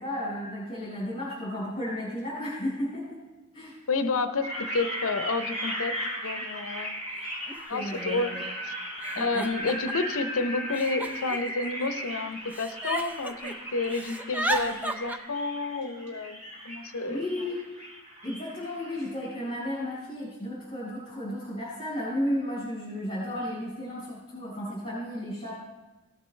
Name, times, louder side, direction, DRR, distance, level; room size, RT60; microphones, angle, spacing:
voice 1, 0.0-3.2 3.5-3.8 7.7-8.4 9.1-9.5 17.1-17.6 18.2-25.5, left 1 dB, 20° left, -9 dB, 4.2 m, -33 dB
voice 2, 3.9-5.9 6.2-7.0 7.7-8.3 9.2-17.3, left 3 dB, 65° left, 9 dB, 0.7 m, -30 dB
sound 1, 4.4-19.5, equal, 30° right, 3.5 m, -37 dB
Giggle, 6.4-6.5 7.5-7.6 7.8-8.4 9.0-10.1 10.7-12.0 12.5-13.5 13.8-15.2, right 1 dB, 10° right, 0.6 m, -34 dB
16.5 x 8.9 x 3.2 m, 1.1 s
head